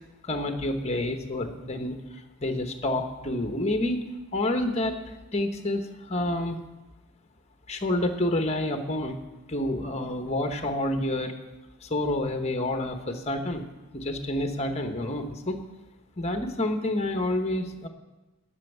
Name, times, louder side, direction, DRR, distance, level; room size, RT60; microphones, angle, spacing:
voice 1, 0.2-4.0 4.3-5.0 5.3-6.6 7.7-9.2 9.5-11.4 11.8-13.7 13.9-15.7 16.2-17.9, left 1 dB, 30° left, 6 dB, 1.1 m, -28 dB
11.5 x 6.4 x 9.3 m, 1.1 s
head